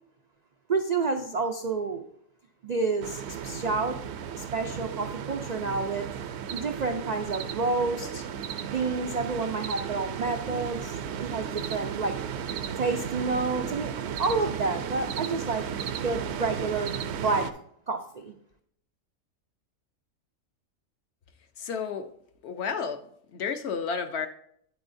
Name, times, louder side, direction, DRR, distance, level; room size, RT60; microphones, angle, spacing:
voice 1, 0.7-2.1 2.6-4.0 4.3-6.1 6.5-8.2 8.7-12.1 12.8-15.7 16.0-17.5 17.9-18.3, right 4 dB, 80° right, 5 dB, 0.3 m, -29 dB
sound 1, 3.0-17.5, right 8 dB, 65° right, 0.7 m, -35 dB
voice 2, 21.6-22.1 22.4-23.0 23.3-24.3, left 6 dB, 60° left, 8 dB, 0.8 m, -31 dB
8.8 x 8.0 x 2.6 m, 0.68 s
omnidirectional pair, 1.4 m